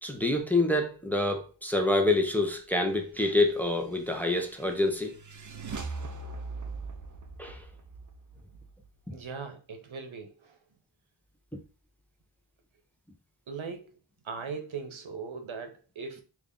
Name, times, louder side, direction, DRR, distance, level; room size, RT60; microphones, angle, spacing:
voice 1, 0.0-5.1 7.4-7.6, left 2 dB, 5° left, 0.6 m, -27 dB
sound 1, 3.6-9.2, right 3 dB, 40° right, 0.6 m, -41 dB
voice 2, 9.1-10.6 13.5-14.0 14.2-16.2, right 5 dB, 85° right, 0.7 m, -39 dB
3.2 x 2.5 x 3.6 m
wide cardioid pair, 45°, 46 cm